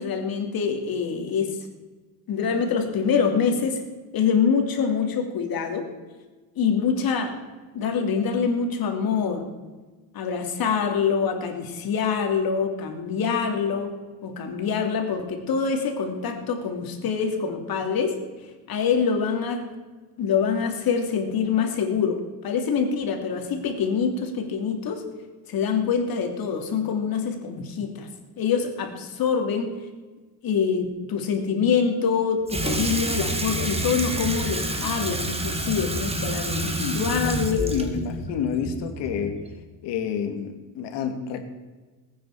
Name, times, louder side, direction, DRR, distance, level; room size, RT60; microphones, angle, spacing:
voice 1, 0.0-1.5 2.3-3.8 4.1-5.9 6.6-7.3 7.7-9.5 10.1-13.9 14.2-18.2 18.7-19.7 20.2-25.0 25.5-28.1 28.4-29.8 30.4-37.6, left 6 dB, 55° left, 4 dB, 3.0 m, -25 dB
Water tap faucet / Sink (filling or washing), 32.5-39.5, right 1 dB, 15° right, 2.2 m, -28 dB
voice 2, 36.5-39.4 39.8-41.4, left 7 dB, 70° left, 6 dB, 2.4 m, -29 dB
20.5 x 9.3 x 4.9 m, 1.3 s
cardioid pair, 105°, 43 cm